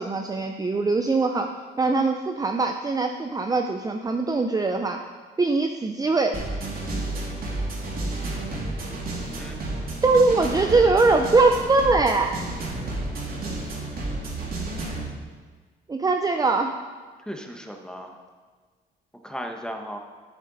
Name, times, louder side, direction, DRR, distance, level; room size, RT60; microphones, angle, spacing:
voice 1, 0.0-1.5 1.8-5.0 5.4-6.4 10.0-12.3 15.9-16.8, right 3 dB, 20° right, 5 dB, 0.5 m, -21 dB
sound 1, 6.3-15.1, right 2 dB, 50° right, 2.5 m, -31 dB
voice 2, 17.3-18.2 19.2-20.0, equal, 5° left, 4 dB, 1.1 m, -36 dB
9.6 x 7.7 x 4.0 m, 1.5 s
cardioid pair, 90°, 20 cm